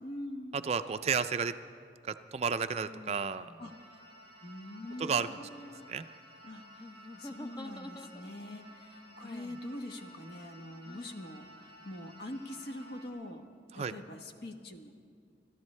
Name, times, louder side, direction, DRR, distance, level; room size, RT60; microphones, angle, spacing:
voice 1, 0.0-0.6 3.6-3.7 4.4-5.9 6.4-6.8 7.2-13.4 13.7-14.9, left 1 dB, 65° left, 5 dB, 1.0 m, -44 dB
voice 2, 0.7-1.5 2.0-3.5 5.0-5.3 5.9-6.0 13.8-13.9, right 6 dB, 35° right, 10 dB, 0.3 m, -31 dB
sound 1, 1.3-1.5 2.8-3.7 4.8-5.4 6.8-8.5 9.2-9.7 10.8-11.3, left 1 dB, 25° left, 0.5 m, -48 dB
sound 2, 3.6-13.1, equal, 80° left, 3.3 m, -55 dB
29.5 x 13.5 x 3.2 m, 2.3 s
head